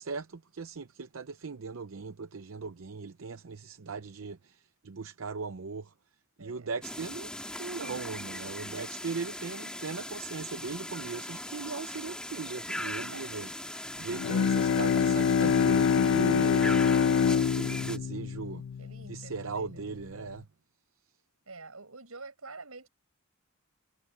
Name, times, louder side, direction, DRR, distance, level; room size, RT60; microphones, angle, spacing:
voice 1, 0.0-5.9 6.4-7.3 7.6-13.5 14.0-17.0 17.3-18.6 19.1-20.5, right 4 dB, 70° right, 0.6 m, -39 dB
voice 2, 6.4-6.7 7.7-8.6 12.8-13.3 18.8-20.1 21.5-22.9, right 3 dB, 90° right, 6.6 m, -48 dB
sound 1, 6.8-18.0, left 1 dB, 5° left, 3.0 m, -39 dB
Bowed string instrument, 14.1-19.5, left 6 dB, 60° left, 0.3 m, -25 dB
head